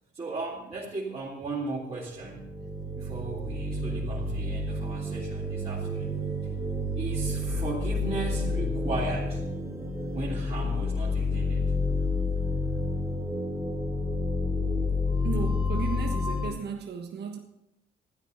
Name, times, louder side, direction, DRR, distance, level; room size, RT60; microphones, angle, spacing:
voice 1, 0.1-2.5 2.9-6.1 7.0-9.4 10.1-11.7, right 3 dB, 30° right, 3.1 m, -36 dB
sound 1, 2.2-16.5, left 2 dB, 10° right, 2.6 m, -29 dB
voice 2, 15.2-17.4, right 6 dB, 55° right, 1.3 m, -35 dB
12.5 x 9.6 x 5.9 m
cardioid pair, 90°, 20 cm